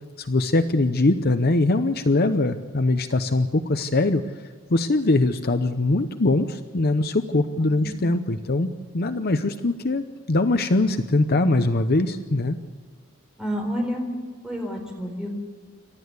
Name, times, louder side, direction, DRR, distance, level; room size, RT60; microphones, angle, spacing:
voice 1, 0.2-4.2 4.7-8.7 8.9-12.6, left 2 dB, 45° left, 8 dB, 0.8 m, -22 dB
voice 2, 7.5-8.0 13.4-14.1 14.4-15.3, equal, 5° right, 1 dB, 4.5 m, -30 dB
28.5 x 12.5 x 8.2 m, 1.5 s
head